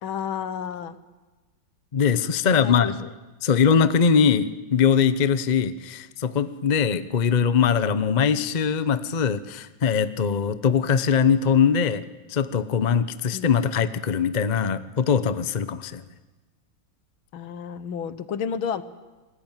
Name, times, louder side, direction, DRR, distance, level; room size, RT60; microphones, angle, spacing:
voice 1, 0.0-1.0 2.4-3.1 13.3-13.5 17.3-18.8, left 7 dB, 85° left, 13 dB, 2.0 m, -31 dB
voice 2, 1.9-3.0 3.4-12.0 12.3-16.0, left 6 dB, 45° left, 13 dB, 0.5 m, -21 dB
27.5 x 19.5 x 9.1 m, 1.2 s
omnidirectional pair, 2.2 m